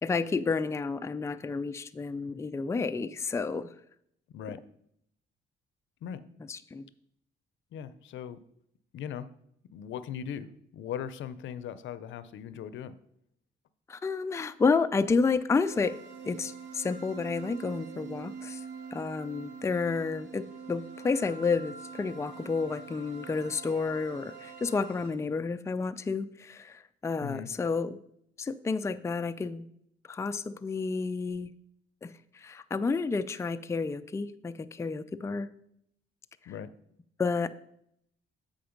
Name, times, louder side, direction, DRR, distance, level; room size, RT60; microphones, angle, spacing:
voice 1, 0.0-3.7 6.5-6.8 13.9-16.0 16.2-18.6 18.9-28.0 28.4-29.7 30.1-31.5 32.0-35.5 37.2-37.5, left 4 dB, 15° left, 10 dB, 0.4 m, -30 dB
voice 2, 4.3-4.6 6.0-6.2 7.7-8.4 8.9-9.3 9.7-13.0 27.2-27.5 36.5-36.7, left 9 dB, 75° left, 14 dB, 0.6 m, -39 dB
sound 1, 15.7-25.1, right 5 dB, 60° right, 1.2 m, -44 dB
7.8 x 5.2 x 5.1 m, 0.72 s
cardioid pair, 90°, 20 cm